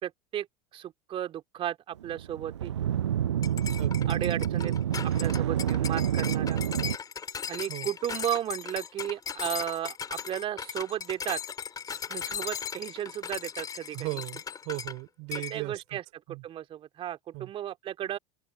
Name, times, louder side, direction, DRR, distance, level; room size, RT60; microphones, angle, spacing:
voice 1, 0.0-0.5 0.7-2.7 4.1-4.7 5.0-6.6 7.5-11.4 12.1-14.1 15.5-16.0 16.3-18.2, right 11 dB, 35° right, 2.6 m, -34 dB
sound 1, 2.0-7.0, right 10 dB, 75° right, 0.5 m, -28 dB
sound 2, 3.4-15.0 15.3-15.6, left 7 dB, 25° left, 4.3 m, -37 dB
voice 2, 3.8-4.1 4.6-4.8 7.7-7.9 13.9-16.0 16.3-16.4 17.3-17.5, right 28 dB, 55° right, 3.4 m, -37 dB
open air
figure-of-eight pair, 75°, 15 cm